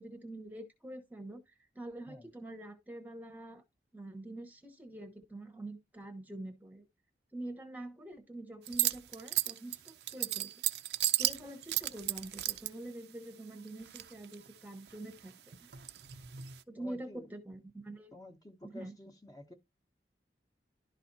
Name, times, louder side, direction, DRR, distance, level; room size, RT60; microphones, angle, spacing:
voice 1, 0.0-3.6 3.9-6.8 7.3-10.5 11.2-15.5 16.7-18.1 18.6-18.9, right 1 dB, 10° right, 1.0 m, -45 dB
sound 1, 8.7-12.7 13.7-14.5 14.9-16.6, right 15 dB, 75° right, 0.5 m, -34 dB
voice 2, 16.8-17.3 18.1-19.5, left 2 dB, 20° left, 1.0 m, -51 dB
11.5 x 4.2 x 2.7 m
head